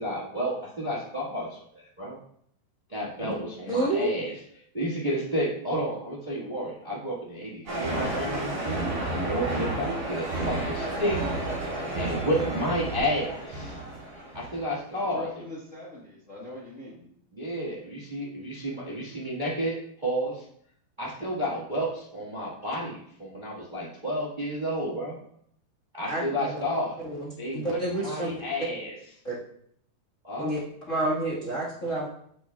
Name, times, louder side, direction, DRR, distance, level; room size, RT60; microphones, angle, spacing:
voice 1, 0.0-2.2 2.9-4.3 4.7-8.8 9.2-11.2 11.9-13.8 14.3-15.3 17.3-20.4 21.0-25.2 25.9-26.9 27.4-28.9 30.2-30.5, equal, 30° right, -5 dB, 0.9 m, -31 dB
voice 2, 3.7-4.1 26.1-26.6 27.2-28.4 29.2-29.4 30.4-30.6 30.9-32.1, right 1 dB, 35° left, -6 dB, 1.2 m, -29 dB
sound 1, 7.7-14.7, right 2 dB, 45° right, 5.2 m, -31 dB
voice 3, 14.9-17.1, left 2 dB, 65° left, -6 dB, 0.7 m, -42 dB
15.0 x 6.1 x 2.4 m, 0.67 s
omnidirectional pair, 4.1 m